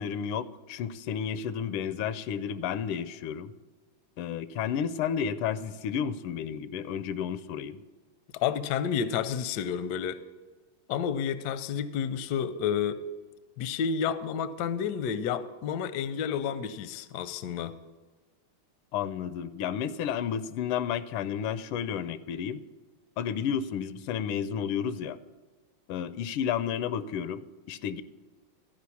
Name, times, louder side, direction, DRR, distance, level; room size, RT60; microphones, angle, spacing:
voice 1, 0.0-3.5 4.2-7.8 18.9-22.6 23.2-25.2 25.9-28.0, left 8 dB, 90° left, 14 dB, 1.5 m, -32 dB
voice 2, 8.3-10.2 10.9-13.0 13.6-17.7, left 7 dB, 70° left, 14 dB, 1.0 m, -30 dB
13.5 x 5.2 x 8.3 m, 1.3 s
omnidirectional pair, 2.3 m